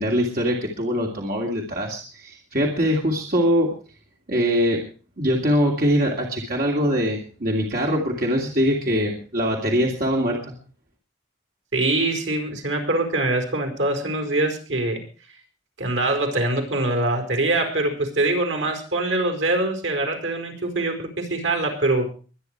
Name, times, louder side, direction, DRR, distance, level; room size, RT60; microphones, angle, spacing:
voice 1, 0.0-3.7 4.3-4.8 5.2-10.5, equal, 50° right, -1 dB, 2.9 m, -22 dB
voice 2, 11.7-15.0 15.8-22.2, right 2 dB, 70° right, 5 dB, 4.7 m, -23 dB
23.5 x 10.0 x 4.7 m, 0.38 s
head